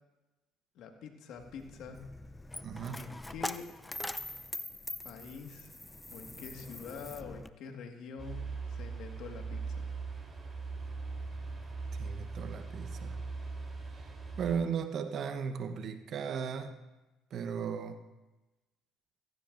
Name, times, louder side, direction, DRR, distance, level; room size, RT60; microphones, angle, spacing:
voice 1, 0.8-2.0 3.0-3.7 5.0-5.8 6.1-9.9, left 5 dB, 70° left, 4 dB, 1.7 m, -46 dB
Coin (dropping), 1.4-7.5, left 1 dB, 10° left, 0.5 m, -43 dB
voice 2, 2.6-3.2 12.0-13.2 14.4-16.8 17.3-18.0, right 7 dB, 55° right, 9 dB, 0.9 m, -36 dB
sound 1, 8.2-14.6, right 4 dB, 25° right, 3.4 m, -40 dB
17.0 x 15.0 x 2.6 m, 1.1 s
supercardioid pair, 85°, 0 cm